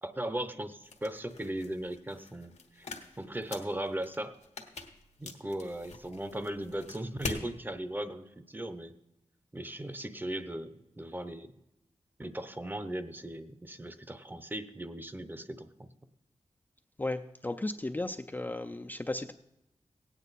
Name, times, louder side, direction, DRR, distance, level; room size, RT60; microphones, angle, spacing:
voice 1, 0.0-2.9 3.2-4.4 5.2-8.9 9.5-11.5 12.2-15.9, right 1 dB, 15° right, 11 dB, 0.7 m, -38 dB
sound 1, 0.8-7.5, left 3 dB, 85° left, 1.4 m, -44 dB
voice 2, 17.0-19.3, left 2 dB, 15° left, 7 dB, 0.4 m, -35 dB
17.0 x 9.1 x 4.1 m, 0.88 s
wide cardioid pair, 75°, 11 cm